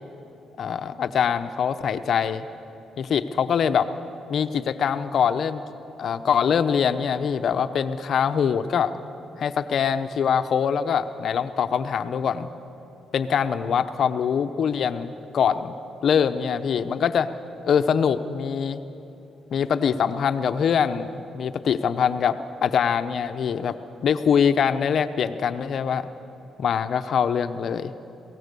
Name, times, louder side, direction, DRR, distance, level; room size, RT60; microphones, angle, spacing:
voice 1, 0.6-2.5 3.0-3.9 4.3-5.6 6.0-8.9 9.4-12.5 13.1-15.7 16.0-17.3 17.6-18.8 19.5-23.8 24.0-26.1 26.6-27.9, left 7 dB, 60° left, 10 dB, 0.9 m, -23 dB
22.5 x 17.0 x 6.9 m, 3.0 s
cardioid pair, 90°, 0 cm